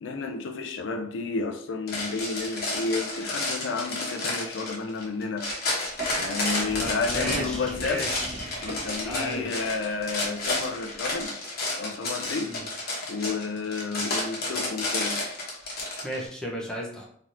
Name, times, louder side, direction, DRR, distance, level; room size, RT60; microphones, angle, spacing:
voice 1, 0.0-5.5 6.2-8.1 8.6-11.3 11.8-12.6 13.1-15.2, left 4 dB, 75° left, 0.4 m, -31 dB
sound 1, 1.9-16.2, left 2 dB, 55° left, 0.9 m, -31 dB
sound 2, 5.8-11.2, right 1 dB, 35° right, 1.0 m, -40 dB
voice 2, 6.8-9.5 12.4-12.6 16.0-17.1, equal, 5° left, 0.6 m, -35 dB
3.2 x 2.8 x 2.5 m
head